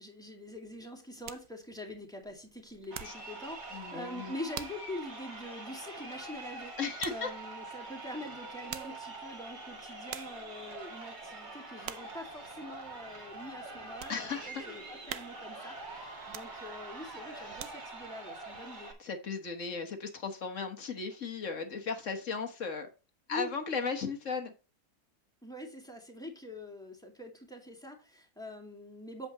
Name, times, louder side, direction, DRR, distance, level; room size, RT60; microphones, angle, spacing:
voice 1, 0.0-6.8 7.1-18.9 23.3-23.5 25.4-29.3, left 1 dB, ahead, 2.1 m, -44 dB
sound 1, 0.6-3.3 3.7-4.0 4.5-4.9 5.3-5.4 7.0-7.3 8.4-9.1 9.7-9.8 10.1-10.5 11.0-11.3 11.8-12.2 12.7-12.8 13.3-14.2 14.6-14.7 15.1-15.6 16.2-16.9 17.3-18.1 18.5-18.6, right 11 dB, 70° right, 1.2 m, -45 dB
Crowd, 2.8-18.9, right 3 dB, 30° right, 1.9 m, -45 dB
voice 2, 3.7-4.3 6.8-7.3 14.1-14.7 17.4-17.6 19.0-22.9 23.3-24.5, left 5 dB, 50° left, 1.7 m, -36 dB
8.4 x 7.9 x 3.0 m
omnidirectional pair, 1.8 m